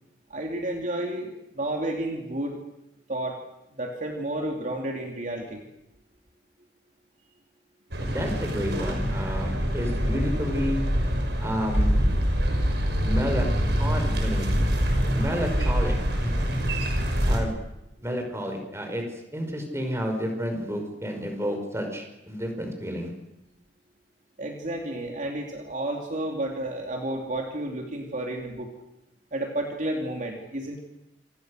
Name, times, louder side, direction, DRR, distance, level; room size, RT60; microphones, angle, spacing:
voice 1, 0.3-2.6 3.1-3.4 3.7-5.6 24.4-28.7 29.3-30.8, right 1 dB, 45° right, 1 dB, 3.2 m, -31 dB
sound 1, 7.9-17.4, equal, 75° right, 6.0 m, -25 dB
voice 2, 8.0-10.8 11.4-12.2 13.0-13.5 13.8-14.5 15.1-16.6 17.3-17.5 18.0-19.0 19.3-23.1, equal, 15° right, 4 dB, 5.8 m, -30 dB
28.0 x 26.5 x 6.7 m, 0.88 s
head